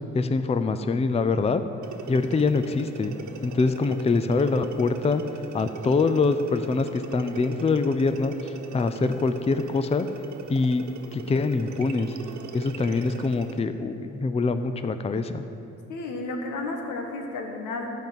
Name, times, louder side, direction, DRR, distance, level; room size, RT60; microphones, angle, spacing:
voice 1, 0.1-1.6 2.1-3.2 3.4-5.2 5.5-10.1 10.5-10.8 11.1-12.1 12.5-15.4, left 3 dB, 20° left, 10 dB, 0.5 m, -24 dB
sound 1, 1.8-13.7, right 5 dB, 70° right, 1.1 m, -40 dB
voice 2, 15.9-17.9, left 2 dB, 90° left, 3 dB, 1.5 m, -32 dB
14.5 x 5.4 x 7.6 m, 2.8 s
cardioid pair, 90°, 30 cm